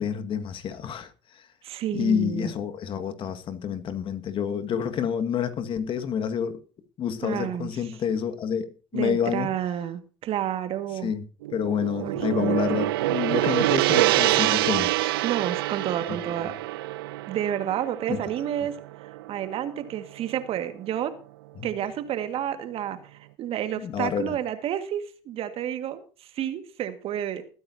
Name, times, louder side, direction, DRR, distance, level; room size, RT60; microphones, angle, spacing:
voice 1, 0.0-1.5 1.9-6.6 7.0-8.7 8.9-9.5 11.0-11.2 11.5-15.1 16.4-16.5 18.1-18.2 21.6-21.7 23.8-24.3, left 8 dB, 45° left, 1.9 m, -28 dB
voice 2, 1.6-2.5 7.2-7.7 8.9-11.1 12.0-12.8 15.2-16.5 17.3-21.1 21.6-26.0 26.3-27.4, right 10 dB, 55° right, 1.9 m, -30 dB
Gong, 11.4-19.8, right 17 dB, 85° right, 0.5 m, -26 dB
20.5 x 9.5 x 2.8 m
supercardioid pair, 90°, 12 cm